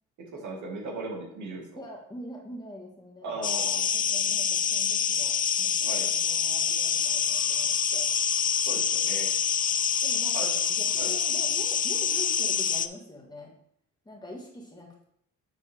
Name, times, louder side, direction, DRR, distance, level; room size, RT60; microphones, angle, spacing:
voice 1, 0.3-1.6 3.2-3.9 5.8-6.1 8.6-9.3 10.3-10.5 10.9-11.1, right 2 dB, 70° right, 0 dB, 1.8 m, -37 dB
voice 2, 1.8-3.5 3.9-8.1 10.0-13.5 14.1-15.0, left 1 dB, 15° left, -2 dB, 1.9 m, -44 dB
sound 1, 3.4-12.9, left 7 dB, 30° left, 0.3 m, -26 dB
9.1 x 4.1 x 3.4 m, 0.71 s
cardioid pair, 90°, 30 cm